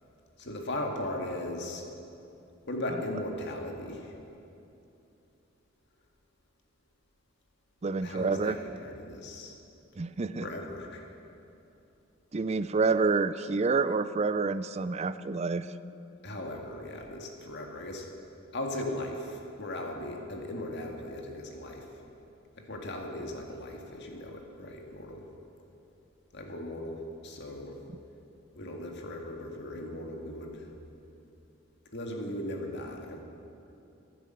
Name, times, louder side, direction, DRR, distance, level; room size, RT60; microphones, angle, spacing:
voice 1, 0.4-1.8 2.7-4.1 8.0-9.6 10.4-11.1 16.2-18.1 18.5-21.9 22.6-25.3 26.3-27.8 28.5-30.7 31.9-33.2, left 1 dB, 55° left, 1 dB, 1.9 m, -38 dB
voice 2, 7.8-8.6 10.0-10.5 12.3-15.7, right 4 dB, 30° right, 13 dB, 0.4 m, -28 dB
14.5 x 10.0 x 7.8 m, 2.8 s
head